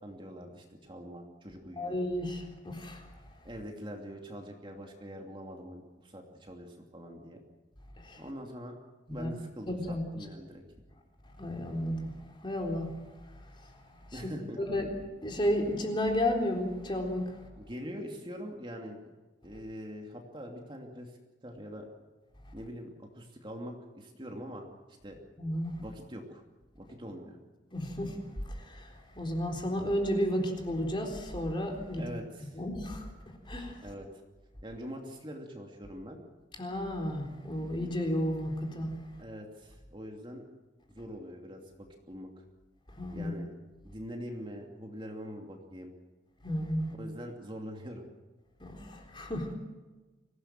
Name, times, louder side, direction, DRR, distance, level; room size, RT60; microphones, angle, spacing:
voice 1, 0.0-1.9 3.4-7.4 8.2-8.8 9.1-10.6 14.1-14.6 17.6-19.0 19.4-21.9 22.5-24.7 25.0-25.2 25.8-26.4 26.8-27.4 31.9-32.6 33.8-34.1 34.6-36.2 39.2-40.5 40.9-42.4 43.1-43.5 43.8-45.9 47.0-48.0, equal, 25° right, 2 dB, 2.7 m, -43 dB
voice 2, 1.8-3.1 7.9-8.2 9.1-9.3 9.7-10.3 11.4-12.9 14.7-14.9 15.2-17.4 25.4-25.8 27.7-28.2 28.5-32.0 32.5-33.1 33.5-33.8 36.6-38.9 43.0-43.3 46.4-46.9 48.6-49.5, equal, 25° left, 2 dB, 3.8 m, -32 dB
25.5 x 17.5 x 7.6 m, 1.2 s
head